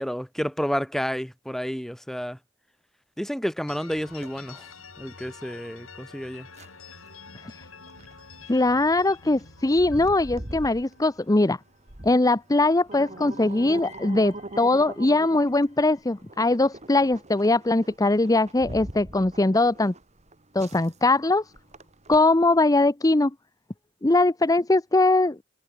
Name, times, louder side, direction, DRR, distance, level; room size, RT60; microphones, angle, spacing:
voice 1, 0.0-2.4 3.2-4.7 5.0-6.5, equal, ahead, 1.6 m, -30 dB
sound 1, 3.7-12.4 12.7-16.8, left 5 dB, 85° left, 5.1 m, -49 dB
sound 2, 4.0-22.8, right 1 dB, 35° right, 3.4 m, -43 dB
voice 2, 8.5-11.6 12.0-19.9 20.5-21.4 22.1-23.3 24.0-25.4, left 2 dB, 20° left, 0.7 m, -21 dB
head